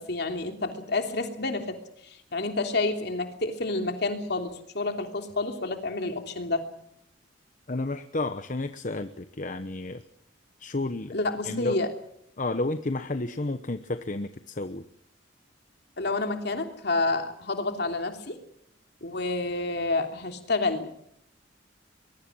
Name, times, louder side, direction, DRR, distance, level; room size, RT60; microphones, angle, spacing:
voice 1, 0.0-1.8 2.0-6.7 11.1-11.9 16.0-18.4 19.0-20.9, left 2 dB, 60° left, 5 dB, 3.1 m, -29 dB
voice 2, 7.7-10.0 10.6-11.1 11.4-11.8 12.4-14.8, left 2 dB, 40° left, 10 dB, 1.0 m, -31 dB
23.5 x 22.0 x 6.3 m, 0.72 s
head